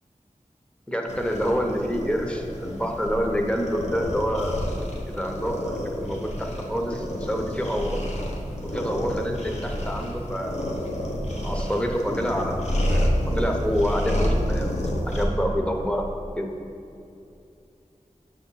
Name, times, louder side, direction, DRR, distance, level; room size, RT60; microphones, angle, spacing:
voice 1, 0.9-4.6 5.0-8.0 8.6-10.7 11.4-16.5, equal, 10° left, 2 dB, 0.8 m, -27 dB
sound 1, 1.1-15.3, equal, 60° left, 1.0 m, -29 dB
7.7 x 3.5 x 5.5 m, 2.6 s
wide cardioid pair, 65°, 13 cm